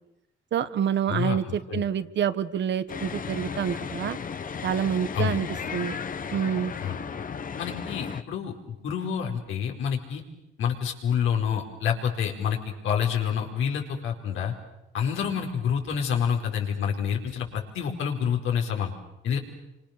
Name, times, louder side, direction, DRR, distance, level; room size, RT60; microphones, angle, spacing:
voice 1, 0.5-4.2 4.6-5.5 5.7-6.0 6.3-6.7, right 8 dB, 65° right, 13 dB, 1.4 m, -27 dB
voice 2, 1.1-1.9 5.1-5.4 6.8-7.0 7.6-10.2 10.6-14.5 14.9-18.9 19.2-19.4, left 7 dB, 85° left, 1 dB, 4.8 m, -28 dB
sound 1, 2.9-8.2, left 6 dB, 45° left, 1.4 m, -35 dB
28.5 x 25.5 x 6.8 m, 0.88 s
cardioid pair, 90°, 20 cm